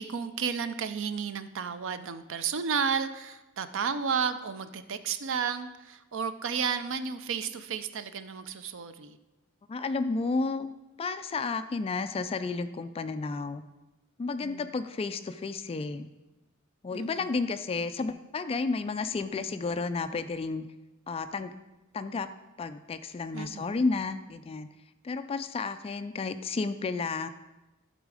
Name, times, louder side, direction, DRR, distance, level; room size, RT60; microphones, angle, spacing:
voice 1, 0.0-9.2 14.4-14.7 16.9-17.3 23.3-23.7, right 6 dB, 65° right, 11 dB, 0.5 m, -32 dB
voice 2, 9.7-10.7 11.0-13.6 14.2-16.1 16.8-20.7 21.1-21.5 21.9-22.3 22.6-24.7 25.0-27.3, left 4 dB, 25° left, 11 dB, 0.3 m, -32 dB
11.5 x 4.0 x 4.8 m, 1.0 s
head